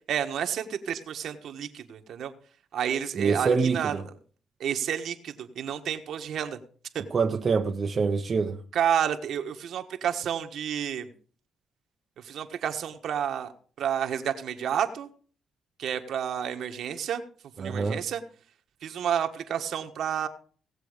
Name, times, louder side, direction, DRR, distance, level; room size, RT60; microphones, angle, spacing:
voice 1, 0.1-2.3 2.7-3.9 4.6-6.6 6.9-7.0 8.7-11.1 12.2-13.5 13.8-15.1 15.8-17.2 17.6-18.2 18.8-20.3, right 9 dB, 70° right, 1.4 m, -30 dB
voice 2, 3.1-4.0 7.1-8.6 17.6-18.1, right 5 dB, 40° right, 0.8 m, -26 dB
17.5 x 7.6 x 5.1 m
cardioid pair, 90°, 0 cm